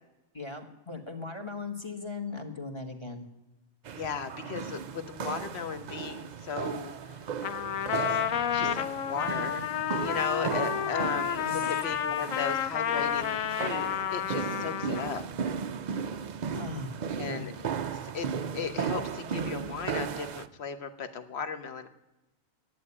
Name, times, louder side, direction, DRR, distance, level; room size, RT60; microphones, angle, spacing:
voice 1, 0.3-3.3 11.4-11.6 16.5-17.5, left 4 dB, 20° left, 5 dB, 1.4 m, -39 dB
voice 2, 3.9-7.2 7.8-8.2 8.5-15.3 17.2-17.5 18.0-18.3 18.5-21.9, left 6 dB, 50° left, 9 dB, 1.2 m, -36 dB
sound 1, 3.9-20.5, right 6 dB, 80° right, 0.4 m, -36 dB
Trumpet, 7.4-15.3, left 10 dB, 75° left, 1.1 m, -31 dB
10.5 x 8.4 x 9.8 m, 0.99 s
omnidirectional pair, 1.5 m